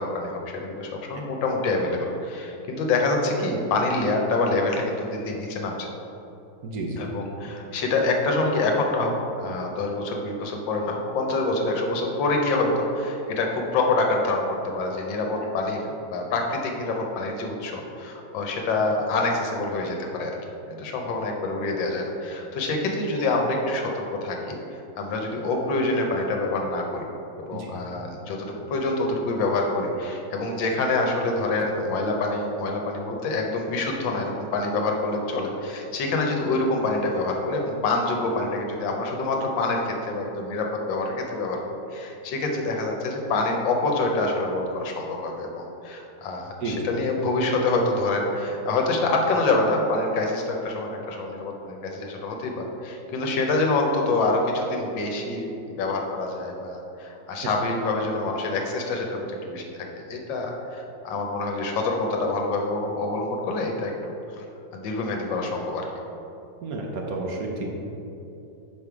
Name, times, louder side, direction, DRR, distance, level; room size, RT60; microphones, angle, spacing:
voice 1, 0.0-5.9 7.0-20.3 20.7-24.6 25.0-27.1 27.5-55.5 55.8-59.6 60.1-64.4 64.7-65.9, left 2 dB, 75° left, 1 dB, 1.5 m, -26 dB
voice 2, 6.6-7.0 15.3-15.5 27.5-27.7 46.6-46.8 57.4-57.5 66.6-67.7, right 3 dB, 65° right, 0 dB, 1.0 m, -31 dB
5.3 x 4.9 x 4.7 m, 2.9 s
omnidirectional pair, 2.1 m